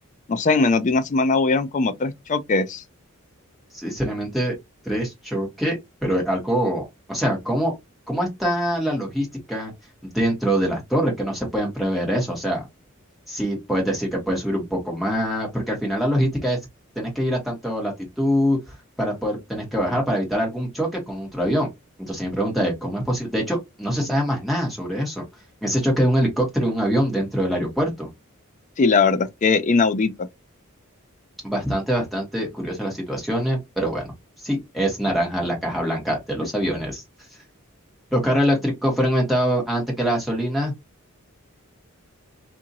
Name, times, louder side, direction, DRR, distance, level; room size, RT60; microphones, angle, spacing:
voice 1, 0.3-2.8 28.8-30.1, left 4 dB, 35° left, 0.4 m, -20 dB
voice 2, 3.7-4.5 4.8-5.8 6.0-7.7 8.1-9.7 10.0-12.6 13.3-16.6 16.9-21.7 22.0-25.2 25.6-28.1 31.4-34.1 34.4-37.0 38.1-40.7, equal, ahead, 1.4 m, -24 dB
2.8 x 2.6 x 2.7 m
head